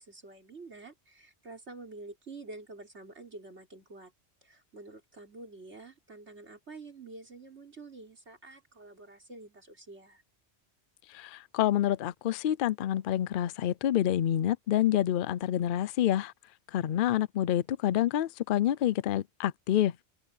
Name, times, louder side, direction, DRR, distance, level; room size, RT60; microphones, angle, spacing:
voice 1, 0.0-4.1 4.4-10.2, right 3 dB, 80° right, 4.4 m, -48 dB
voice 2, 11.1-16.3 16.7-20.0, left 12 dB, 60° left, 0.6 m, -27 dB
omnidirectional pair, 1.1 m